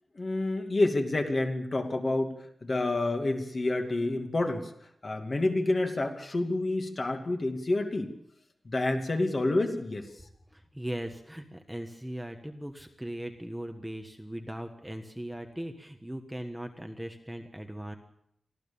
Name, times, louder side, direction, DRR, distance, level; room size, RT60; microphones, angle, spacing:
voice 1, 0.1-4.7 5.0-8.1 8.6-10.1, left 2 dB, 35° left, 4 dB, 2.5 m, -28 dB
voice 2, 10.5-18.0, right 1 dB, 5° right, 4 dB, 1.4 m, -39 dB
24.5 x 15.0 x 7.1 m, 0.75 s
wide cardioid pair, 135°, 0 cm